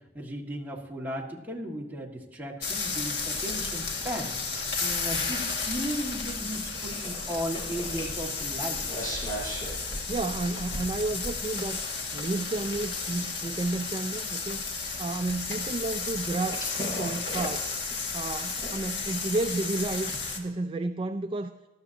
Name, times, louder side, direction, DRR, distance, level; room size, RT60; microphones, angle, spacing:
voice 1, 0.1-8.8, equal, 10° right, -3 dB, 1.9 m, -36 dB
sound 1, 2.6-20.4, left 4 dB, 65° left, 2.0 m, -33 dB
sound 2, 6.5-20.0, equal, 25° left, 5.1 m, -43 dB
voice 2, 10.1-11.8 12.1-14.6 15.0-17.7 18.1-21.6, right 2 dB, 30° right, 9 dB, 0.4 m, -31 dB
19.0 x 13.0 x 2.8 m, 1.2 s
head